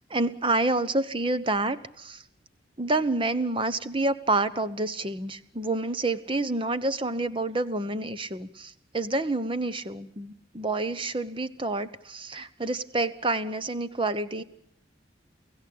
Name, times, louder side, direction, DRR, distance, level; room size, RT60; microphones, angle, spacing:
voice 1, 0.1-2.2 2.8-14.4, right 2 dB, 30° right, 13 dB, 1.1 m, -28 dB
29.0 x 16.5 x 8.7 m, 0.72 s
head